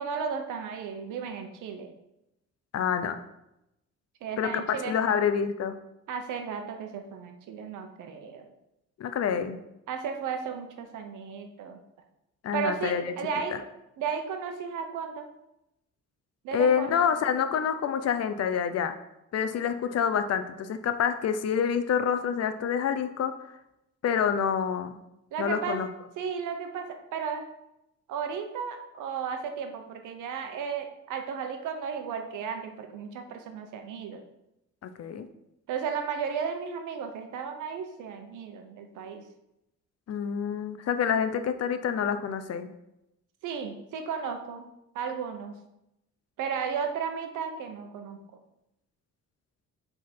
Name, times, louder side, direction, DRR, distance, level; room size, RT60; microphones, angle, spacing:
voice 1, 0.0-1.9 4.2-5.1 6.1-8.5 9.9-11.8 12.5-13.5 14.0-15.3 16.4-17.1 25.3-25.8 26.2-27.5 28.1-34.2 35.7-39.2 43.4-44.6 44.9-45.6 46.4-48.2, right 6 dB, 85° right, 5 dB, 1.0 m, -34 dB
voice 2, 2.7-3.2 4.4-5.8 9.0-9.6 12.4-13.1 13.5-13.6 16.5-18.9 19.3-23.3 24.0-25.0 25.4-25.9 34.8-35.3 40.1-42.7, left 7 dB, 55° left, 10 dB, 0.7 m, -27 dB
7.4 x 3.8 x 4.4 m, 0.88 s
cardioid pair, 90°, 30 cm